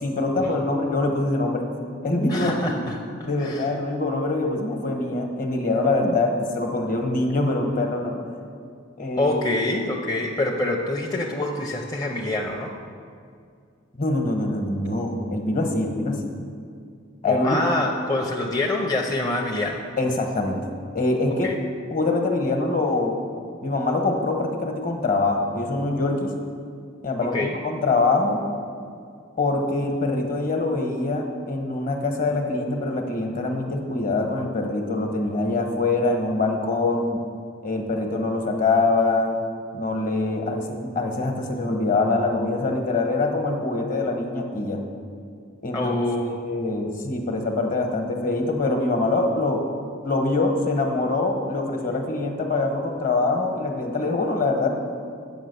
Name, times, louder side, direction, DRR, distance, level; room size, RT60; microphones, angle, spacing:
voice 1, 0.0-1.7 2.0-2.8 3.2-8.3 9.0-9.3 14.0-16.2 17.2-17.6 20.0-20.6 20.9-21.5 21.9-23.2 23.6-26.3 27.0-28.4 29.4-37.2 37.6-39.4 39.7-44.8 45.6-45.9 46.4-49.6 50.0-54.7, left 2 dB, 45° left, 4 dB, 1.1 m, -24 dB
voice 2, 2.3-3.7 9.2-12.7 17.2-19.8 21.4-21.6 27.2-27.6 45.7-46.4, left 2 dB, 20° left, -1 dB, 0.6 m, -26 dB
8.7 x 5.9 x 6.8 m, 2.3 s
head